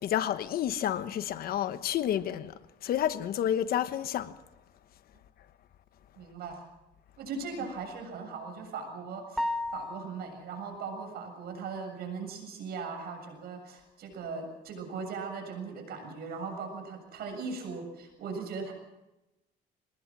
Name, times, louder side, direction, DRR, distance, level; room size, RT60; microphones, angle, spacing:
voice 1, 0.0-4.3 7.6-7.7, left 10 dB, 65° left, 1.2 m, -30 dB
voice 2, 6.2-6.6 7.2-18.7, right 4 dB, 70° right, 7.4 m, -39 dB
sound 1, 9.4-10.4, left 1 dB, ahead, 1.3 m, -33 dB
23.0 x 19.5 x 6.2 m
cardioid pair, 110°, 17 cm